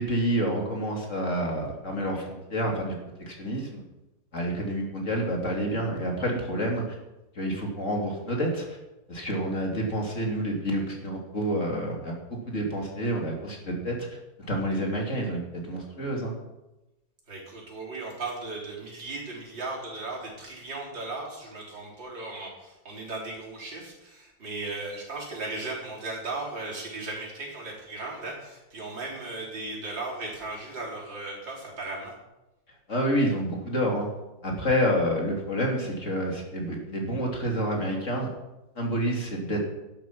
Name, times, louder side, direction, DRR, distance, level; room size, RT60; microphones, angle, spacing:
voice 1, 0.0-2.9 3.3-3.8 4.3-6.8 7.4-8.7 9.1-12.2 12.5-14.1 14.4-16.3 32.9-34.1 34.4-38.3 38.8-39.6, equal, 40° left, 0 dB, 2.9 m, -28 dB
voice 2, 17.3-32.1, right 3 dB, 85° right, -4 dB, 4.8 m, -36 dB
12.0 x 11.0 x 5.9 m, 0.98 s
omnidirectional pair, 1.9 m